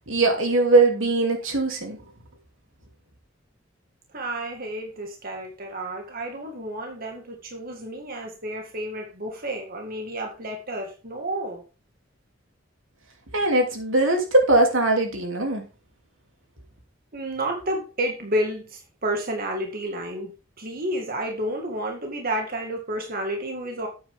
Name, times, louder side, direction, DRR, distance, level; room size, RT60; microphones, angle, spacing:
voice 1, 0.1-2.0 13.3-15.6, right 2 dB, 85° right, 3.1 m, -20 dB
voice 2, 4.1-11.6 17.1-20.3 20.6-23.9, right 1 dB, 50° right, 2.0 m, -30 dB
9.1 x 8.7 x 3.7 m
head